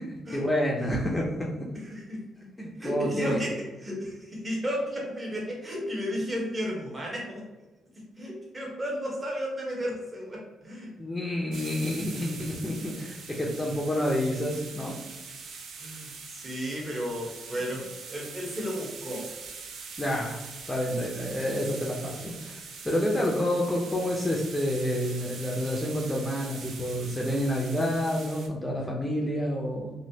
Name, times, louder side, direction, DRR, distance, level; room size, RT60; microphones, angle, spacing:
voice 1, 0.0-1.7 2.6-3.4 11.0-15.0 20.0-20.4 20.7-29.9, equal, 15° left, -2 dB, 0.5 m, -29 dB
voice 2, 1.8-2.2 2.8-7.4 8.2-10.9 15.8-19.3, equal, 25° right, -2 dB, 1.0 m, -33 dB
sound 1, 11.5-28.5, right 5 dB, 70° right, 0.5 m, -43 dB
3.1 x 2.6 x 2.7 m, 1.1 s
cardioid pair, 90°, 0 cm